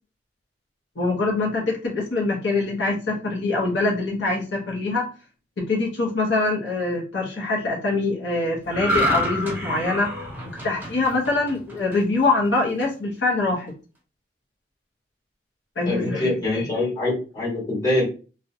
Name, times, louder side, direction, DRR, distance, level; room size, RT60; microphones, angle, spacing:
voice 1, 1.0-5.1 5.6-10.1 10.6-13.7 15.8-16.7, left 3 dB, 75° left, -1 dB, 0.7 m, -24 dB
sound 1, 8.7-12.2 12.6-12.8, equal, 10° right, 0.6 m, -27 dB
voice 2, 15.9-18.0, left 2 dB, 20° left, -5 dB, 1.3 m, -24 dB
2.6 x 2.1 x 2.6 m, 0.35 s
head